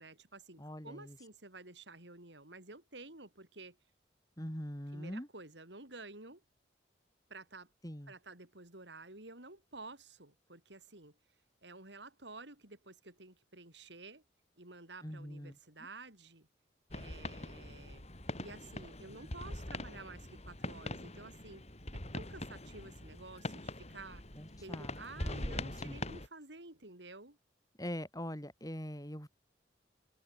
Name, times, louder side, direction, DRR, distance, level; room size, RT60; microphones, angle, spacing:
voice 1, 0.0-3.8 4.9-6.4 7.3-7.7 8.1-11.2 11.6-14.2 14.6-16.5 16.9-18.0 18.4-21.6 21.9-24.2 24.6-27.4, right 3 dB, 75° right, 5.5 m, -51 dB
voice 2, 0.6-1.2 4.4-5.3 7.8-8.1 15.0-15.6 19.2-19.3 24.3-26.0 27.8-29.3, equal, 20° left, 6.9 m, -43 dB
sound 1, 16.9-26.3, left 1 dB, 35° left, 4.5 m, -43 dB
head